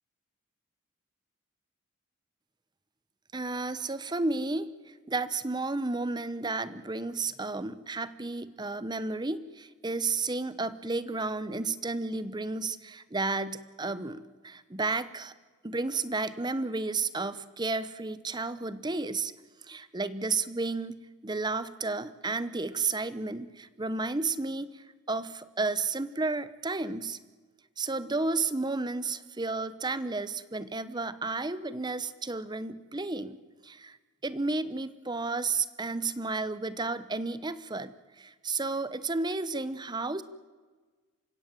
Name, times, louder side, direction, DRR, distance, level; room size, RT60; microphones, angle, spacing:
voice 1, 3.3-15.3 15.6-19.3 19.6-27.2 27.8-34.0 34.2-40.2, right 3 dB, 20° right, 15 dB, 0.8 m, -32 dB
28.0 x 16.5 x 7.4 m, 1.4 s
head